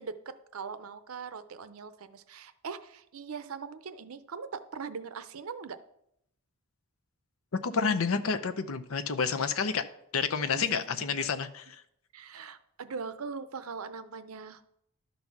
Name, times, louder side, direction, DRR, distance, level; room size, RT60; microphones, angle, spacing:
voice 1, 0.0-5.8 10.5-11.1 12.1-14.6, right 5 dB, 80° right, 12 dB, 0.6 m, -41 dB
voice 2, 7.6-9.8 10.1-11.8, left 5 dB, 75° left, 10 dB, 0.6 m, -29 dB
11.5 x 4.1 x 5.9 m, 0.77 s
head